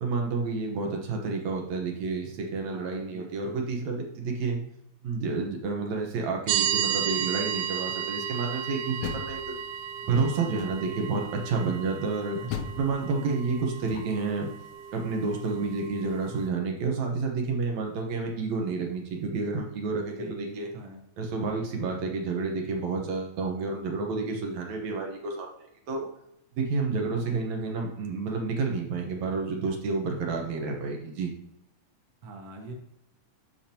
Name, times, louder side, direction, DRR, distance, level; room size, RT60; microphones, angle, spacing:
voice 1, 0.0-4.6 5.0-9.5 10.1-12.4 12.8-14.5 14.9-20.7 21.2-25.5 25.9-26.1 26.6-31.3, right 4 dB, 65° right, 1 dB, 2.4 m, -30 dB
voice 2, 2.7-3.6 12.4-12.5 20.2-21.0 32.2-32.7, right 3 dB, 50° right, 1 dB, 1.2 m, -43 dB
sound 1, 6.5-16.5, right 10 dB, 90° right, 1.5 m, -34 dB
Door, 8.8-10.0 10.6-11.1 12.5-14.4, left 8 dB, 80° left, 1.7 m, -39 dB
13.0 x 5.2 x 2.9 m, 0.79 s
omnidirectional pair, 3.7 m